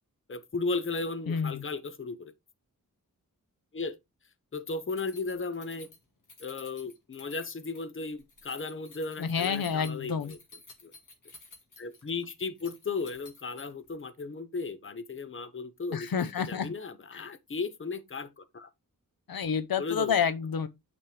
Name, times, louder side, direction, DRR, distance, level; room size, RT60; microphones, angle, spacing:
voice 1, 0.3-2.3 3.7-4.0 4.5-5.9 6.4-10.4 10.8-10.9 11.8-18.7 19.8-20.2, left 4 dB, 35° left, 0.8 m, -35 dB
voice 2, 1.3-1.6 9.2-10.3 15.9-16.7 17.1-17.2 19.3-20.7, left 6 dB, 90° left, 0.7 m, -29 dB
Keys jangling, 4.9-13.9, left 3 dB, 60° left, 1.9 m, -53 dB
8.8 x 4.3 x 3.3 m
wide cardioid pair, 105°, 34 cm